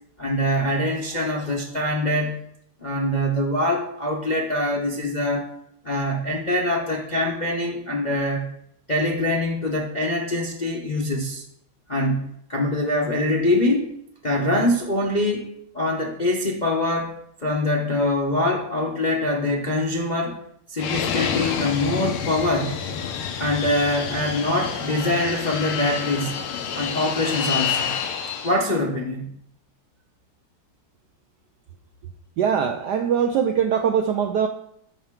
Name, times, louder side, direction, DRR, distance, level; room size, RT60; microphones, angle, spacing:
voice 1, 0.2-2.4 2.8-5.5 5.8-8.5 8.9-11.4 11.9-13.9 14.2-15.5 15.7-20.4 20.7-22.8 23.4-26.4 26.7-27.9 28.4-29.3, left 1 dB, 40° left, -1 dB, 0.6 m, -24 dB
Fixed-wing aircraft airplane, 20.8-28.6, left 7 dB, 85° left, 1.7 m, -28 dB
voice 2, 32.4-34.5, right 7 dB, 75° right, 6 dB, 0.9 m, -22 dB
12.5 x 5.6 x 3.6 m, 0.72 s
omnidirectional pair, 2.3 m